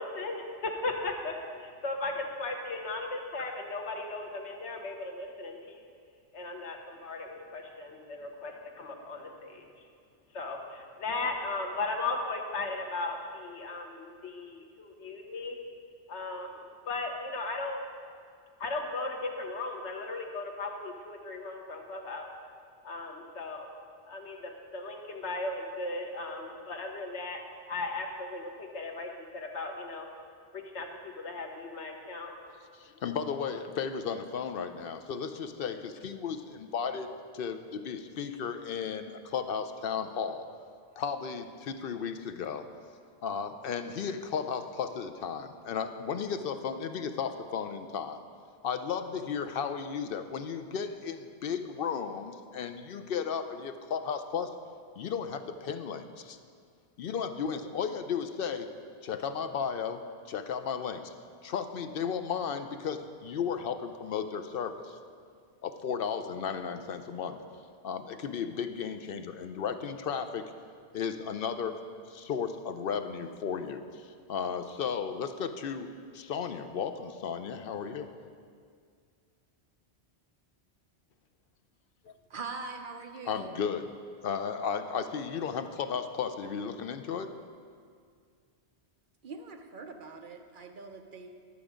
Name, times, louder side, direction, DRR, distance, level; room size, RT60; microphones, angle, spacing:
voice 1, 0.0-5.8 6.3-9.6 10.3-15.6 16.1-17.8 18.6-22.3 22.8-23.7 24.1-27.4 27.7-30.1 30.5-32.3, left 3 dB, 90° left, 3 dB, 1.3 m, -37 dB
voice 2, 32.7-40.5 41.0-42.7 43.2-48.2 48.6-54.5 55.0-56.4 57.0-58.7 59.0-60.0 60.3-61.1 61.4-65.0 65.6-67.4 67.8-70.4 70.9-78.1 82.1-82.2 83.3-83.9 84.2-87.3, left 6 dB, 60° left, 9 dB, 0.7 m, -34 dB
voice 3, 82.3-83.6 89.2-91.3, right 4 dB, 55° right, 5 dB, 0.8 m, -42 dB
11.0 x 7.2 x 5.0 m, 2.1 s
omnidirectional pair, 1.1 m